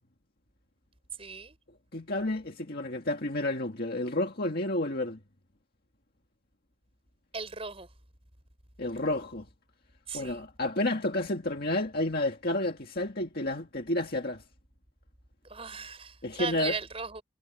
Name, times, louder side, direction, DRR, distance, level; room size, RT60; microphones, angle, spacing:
voice 1, 1.2-1.6 7.3-7.9 10.1-10.5 15.5-17.2, right 5 dB, 30° right, 4.7 m, -37 dB
voice 2, 1.9-5.2 8.8-9.5 10.1-14.4 16.2-16.8, left 1 dB, 50° left, 1.9 m, -30 dB
head